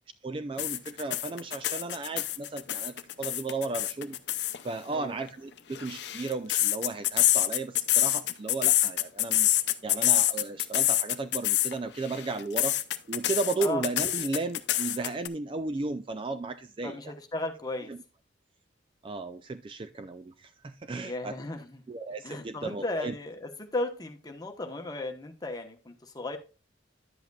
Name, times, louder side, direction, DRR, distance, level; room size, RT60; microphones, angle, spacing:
voice 1, 0.2-4.2 4.6-9.5 9.8-12.8 13.1-17.0 17.9-18.0 19.0-21.3 21.9-23.1, right 3 dB, 30° right, 0.4 m, -34 dB
sound 1, 0.6-4.6 5.6-11.7 12.0-15.3, left 14 dB, 65° left, 0.6 m, -26 dB
voice 2, 16.8-17.9 21.0-21.8 22.2-26.4, left 2 dB, 20° left, 1.0 m, -35 dB
10.5 x 7.9 x 2.3 m
head